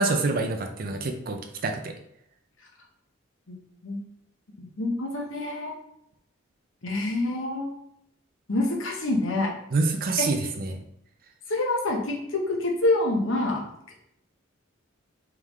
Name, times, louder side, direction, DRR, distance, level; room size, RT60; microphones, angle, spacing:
voice 1, 0.0-1.9 9.7-10.8, right 3 dB, 45° right, 5 dB, 0.5 m, -26 dB
voice 2, 4.6-5.7 6.8-7.7 8.5-9.5 11.5-13.6, left 2 dB, 70° left, 0 dB, 1.0 m, -26 dB
3.7 x 3.5 x 3.1 m, 0.75 s
head